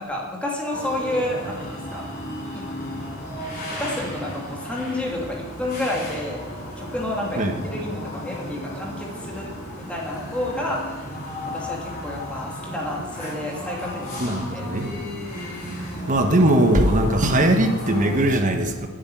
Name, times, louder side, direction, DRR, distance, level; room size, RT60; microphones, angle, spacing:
voice 1, 0.0-2.1 2.5-2.6 3.7-6.4 6.8-9.5 9.8-11.1 11.5-14.2 14.5-14.6, left 1 dB, 5° left, -3 dB, 2.7 m, -30 dB
sound 1, 0.7-18.2, left 1 dB, 40° left, 4.3 m, -34 dB
voice 2, 7.4-7.7 14.2-14.9 16.1-18.9, right 1 dB, 35° right, 6 dB, 1.3 m, -20 dB
9.6 x 9.0 x 9.2 m, 1.4 s
head